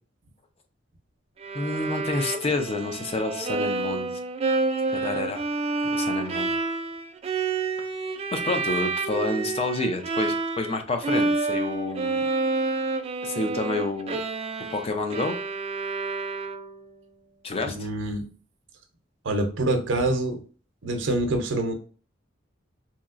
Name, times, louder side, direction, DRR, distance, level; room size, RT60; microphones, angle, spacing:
Bowed string instrument, 1.4-10.8 11.0-16.9, right 3 dB, 30° right, 0.3 m, -28 dB
voice 1, 1.5-4.1 4.9-5.4 5.9-6.5 8.3-12.2 13.2-14.2 14.7-15.4 17.4-17.8, left 2 dB, 30° left, 6 dB, 0.5 m, -29 dB
voice 2, 17.7-18.2 19.2-20.4 20.8-21.7, right 2 dB, 75° right, 4 dB, 0.6 m, -25 dB
3.1 x 2.8 x 2.4 m, 0.40 s
head